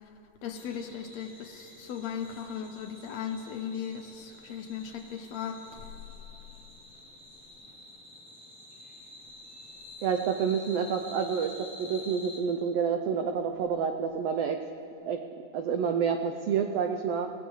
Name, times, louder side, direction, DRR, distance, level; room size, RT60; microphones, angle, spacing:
voice 1, 0.4-5.9, left 8 dB, 70° left, 5 dB, 1.9 m, -37 dB
sound 1, 0.6-12.4, left 2 dB, 5° left, 2.7 m, -49 dB
voice 2, 10.0-14.6 15.0-15.2 15.5-17.3, right 7 dB, 90° right, 5 dB, 1.3 m, -28 dB
23.0 x 16.5 x 3.2 m, 2.9 s
omnidirectional pair, 3.5 m